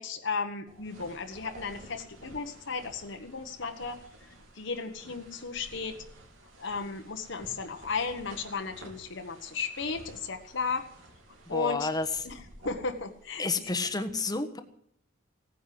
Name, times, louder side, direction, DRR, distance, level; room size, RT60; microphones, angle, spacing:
voice 1, 0.0-4.0 4.5-6.0 6.6-10.8 11.5-11.9 12.2-13.5, left 4 dB, 60° left, 5 dB, 1.4 m, -34 dB
sound 1, 0.7-14.0, right 1 dB, 80° right, 3.5 m, -52 dB
voice 2, 11.5-12.1 13.4-14.6, left 3 dB, 20° left, 8 dB, 1.3 m, -30 dB
17.0 x 9.9 x 7.8 m, 0.70 s
head